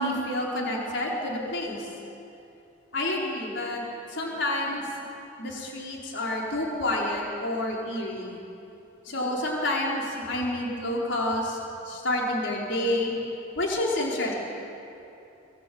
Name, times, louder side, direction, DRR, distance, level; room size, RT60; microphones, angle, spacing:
voice 1, 0.0-1.9 2.9-3.8 4.1-4.9 5.4-8.3 9.0-11.6 11.9-13.2 13.6-14.3, left 1 dB, 65° left, -2 dB, 4.8 m, -29 dB
25.5 x 23.0 x 8.8 m, 2.8 s
head